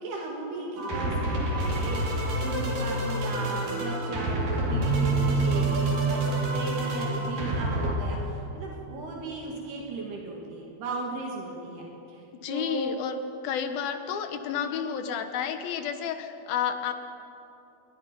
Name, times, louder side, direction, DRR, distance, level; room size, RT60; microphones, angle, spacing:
voice 1, 0.0-13.0, right 2 dB, 80° right, -2 dB, 4.5 m, -36 dB
sound 1, 0.8-8.0, equal, 60° right, 4.9 m, -29 dB
sound 2, 4.7-8.4, right 5 dB, 50° left, 7.8 m, -29 dB
voice 2, 12.4-13.2 13.4-16.9, left 8 dB, 70° left, 8 dB, 2.8 m, -31 dB
26.0 x 22.5 x 5.4 m, 2.9 s
omnidirectional pair, 4.5 m